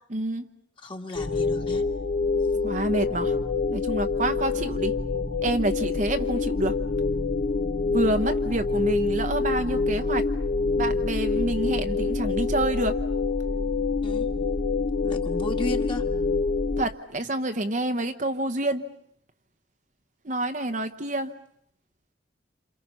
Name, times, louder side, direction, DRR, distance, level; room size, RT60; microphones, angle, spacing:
voice 1, 0.1-0.5 2.6-3.3 3.7-5.0 5.4-6.8 7.9-10.3 10.8-13.0 16.8-18.8 20.2-21.3, right 1 dB, 40° right, 7 dB, 1.0 m, -27 dB
voice 2, 0.8-1.8 14.0-14.3 15.0-16.1, left 1 dB, 25° left, 3 dB, 2.0 m, -34 dB
sound 1, 1.2-16.8, left 4 dB, 45° left, 1.1 m, -26 dB
28.5 x 27.5 x 5.6 m, 0.68 s
head